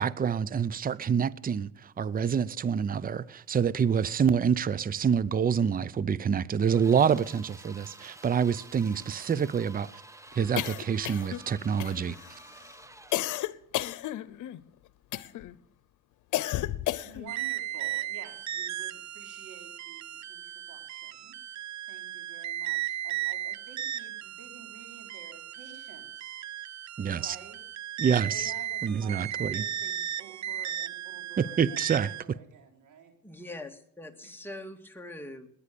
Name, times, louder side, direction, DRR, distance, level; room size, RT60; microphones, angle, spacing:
voice 1, 0.0-10.0 10.3-12.2 27.0-27.4 28.0-28.5 28.8-29.6 31.4-32.4, right 7 dB, 30° right, 0.6 m, -27 dB
sound 1, 6.7-13.4, right 1 dB, 10° right, 1.1 m, -50 dB
sound 2, 10.6-11.5 11.8-12.3 13.1-14.6 15.1-15.5 16.3-17.3, left 15 dB, 85° left, 0.8 m, -32 dB
voice 2, 17.0-21.6 21.9-26.8 27.2-27.6 28.3-33.1 34.2-34.4, right 5 dB, 80° right, 4.1 m, -51 dB
sound 3, 17.3-32.2, right 12 dB, 65° right, 0.8 m, -36 dB
voice 3, 33.2-35.5, left 1 dB, 5° left, 2.1 m, -42 dB
20.0 x 9.8 x 6.8 m
cardioid pair, 90°, 30 cm